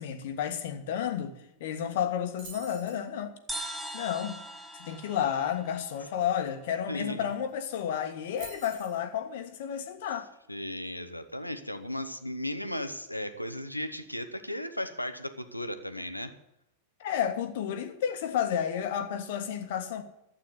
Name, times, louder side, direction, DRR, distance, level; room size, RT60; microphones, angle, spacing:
voice 1, 0.0-3.3 3.9-4.4 4.8-10.3 17.0-20.0, left 9 dB, 55° left, 1.6 m, -31 dB
sound 1, 2.4-3.0 7.0-7.1 7.3-7.6 8.4-9.0, right 5 dB, 45° right, 3.5 m, -47 dB
sound 2, 3.5-7.0, right 1 dB, 5° right, 2.1 m, -42 dB
voice 2, 6.9-7.3 10.5-16.3, left 1 dB, 85° left, 1.1 m, -36 dB
12.0 x 8.7 x 9.8 m
figure-of-eight pair, 90°, 0 cm